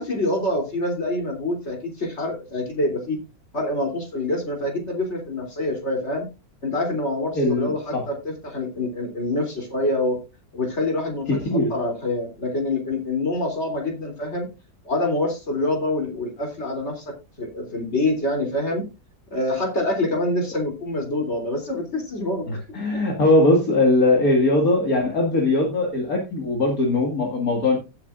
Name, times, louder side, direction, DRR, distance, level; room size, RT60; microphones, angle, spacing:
voice 1, 0.0-3.2 3.5-6.2 6.6-10.2 10.5-14.5 14.8-18.9 19.3-22.5, left 1 dB, 35° left, 3 dB, 3.3 m, -26 dB
voice 2, 7.3-8.0 11.3-11.7 22.5-27.8, left 2 dB, 50° left, 1 dB, 2.6 m, -20 dB
17.0 x 8.3 x 2.5 m, 0.27 s
omnidirectional pair, 2.0 m